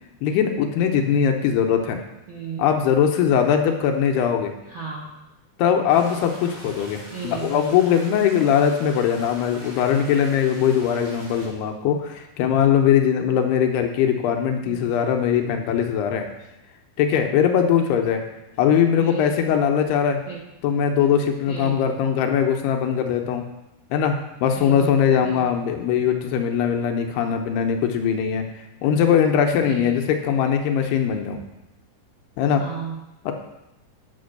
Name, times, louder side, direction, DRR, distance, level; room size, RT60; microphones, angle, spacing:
voice 1, 0.2-2.0 2.6-4.5 5.6-16.3 17.0-18.2 18.6-20.2 20.6-23.4 23.9-28.5 28.8-31.4 32.4-32.6 33.3-33.4, left 8 dB, 80° left, 4 dB, 2.8 m, -21 dB
voice 2, 2.3-2.6 4.7-5.1 7.1-7.8 14.6-14.9 19.0-19.5 20.3-20.4 21.5-21.8 24.5-24.9 25.2-25.6 29.6-29.9 32.6-33.1, right 6 dB, 80° right, -4 dB, 1.1 m, -34 dB
sound 1, 5.9-11.5, equal, 50° right, 4.6 m, -43 dB
9.6 x 6.1 x 6.5 m, 0.95 s
omnidirectional pair, 4.9 m